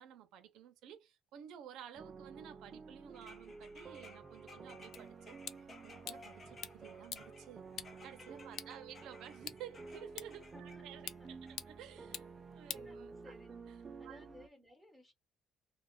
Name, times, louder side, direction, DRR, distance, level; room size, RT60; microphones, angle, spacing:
voice 1, 0.0-5.4 5.8-11.4 11.7-13.3 14.0-14.2, right 10 dB, 80° right, 0.5 m, -53 dB
sound 1, 1.9-14.5, right 4 dB, 30° right, 0.3 m, -52 dB
sound 2, 3.1-10.8 11.5-11.6, left 3 dB, 30° left, 0.7 m, -59 dB
sound 3, 4.9-13.5, left 10 dB, 60° left, 0.3 m, -50 dB
voice 2, 8.5-9.0 10.5-11.5 12.8-13.5 14.0-15.1, left 1 dB, 10° left, 1.1 m, -60 dB
2.3 x 2.0 x 3.5 m
cardioid pair, 135°, 0 cm